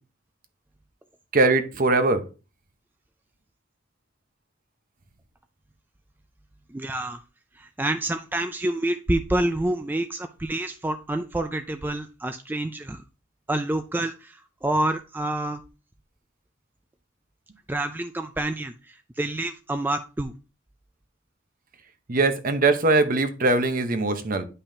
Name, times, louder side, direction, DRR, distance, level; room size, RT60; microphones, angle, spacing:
voice 1, 1.3-2.2 22.1-24.5, right 2 dB, 45° right, 0.9 m, -21 dB
voice 2, 6.7-7.2 7.6-13.0 13.5-15.6 17.7-20.3, right 1 dB, 10° right, 0.3 m, -28 dB
10.5 x 5.5 x 2.7 m
head